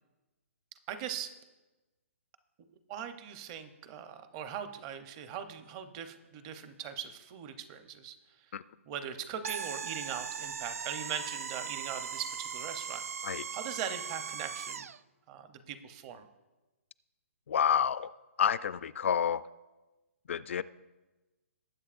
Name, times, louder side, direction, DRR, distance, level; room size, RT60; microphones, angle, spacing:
voice 1, 0.9-1.3 2.9-8.2 8.9-13.0 13.5-14.9 15.3-16.3, right 8 dB, 25° right, 9 dB, 0.7 m, -40 dB
sound 1, 9.4-15.0, right 7 dB, 90° right, 0.4 m, -39 dB
voice 2, 17.5-18.1 18.4-19.4 20.3-20.6, left 8 dB, 60° left, 17 dB, 0.4 m, -29 dB
19.5 x 8.3 x 2.5 m, 1.1 s
hypercardioid pair, 165°, 8 cm